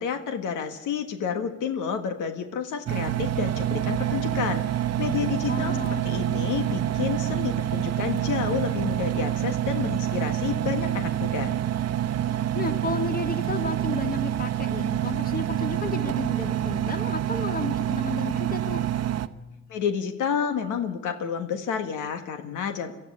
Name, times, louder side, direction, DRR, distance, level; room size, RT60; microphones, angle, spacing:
voice 1, 0.0-5.8 6.0-11.5 19.7-22.9, left 7 dB, 85° left, 7 dB, 1.6 m, -30 dB
Engine, 2.9-19.3, right 11 dB, 55° right, 0.9 m, -27 dB
voice 2, 5.5-6.5 12.5-18.9, left 3 dB, 30° left, 6 dB, 2.3 m, -33 dB
23.5 x 13.5 x 9.7 m, 1.1 s
cardioid pair, 90°, 30 cm